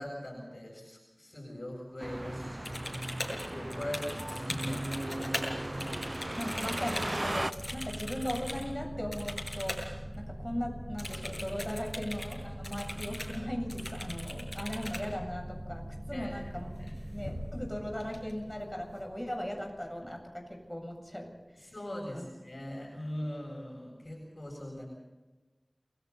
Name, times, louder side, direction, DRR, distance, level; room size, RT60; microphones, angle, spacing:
voice 1, 0.0-5.5 16.1-16.3 16.8-16.9 21.6-24.9, left 1 dB, 55° left, -3 dB, 7.3 m, -41 dB
sound 1, 2.0-7.5, right 1 dB, 35° right, 0.8 m, -36 dB
sound 2, 2.6-5.5 5.8-8.6 9.1-9.9 10.1-10.2 11.0-12.4 12.6-13.4 13.7-15.0 16.7-16.9 17.2-17.7 18.0-18.6, left 1 dB, 35° left, 7.6 m, -40 dB
voice 2, 6.4-16.9 17.1-21.3 22.1-22.2, equal, 10° left, 2 dB, 7.7 m, -38 dB
sound 3, 7.5-20.8, equal, 15° right, 2.2 m, -43 dB
29.5 x 22.0 x 4.2 m, 1.2 s
wide cardioid pair, 50°, 0 cm